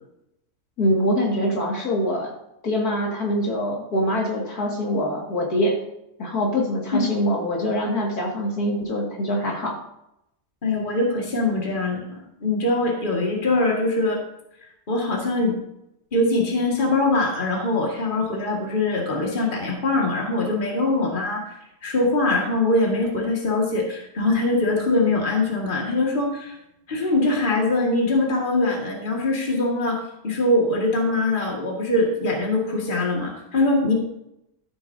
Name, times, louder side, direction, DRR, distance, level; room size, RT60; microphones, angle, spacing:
voice 1, 0.8-2.3 2.6-5.8 6.2-9.8, equal, 75° left, -2 dB, 2.7 m, -24 dB
voice 2, 10.6-14.2 14.9-15.6 16.1-21.5 21.8-26.6 26.9-33.9, left 2 dB, 35° left, -1 dB, 2.1 m, -22 dB
13.0 x 8.6 x 2.7 m, 0.82 s
omnidirectional pair, 1.6 m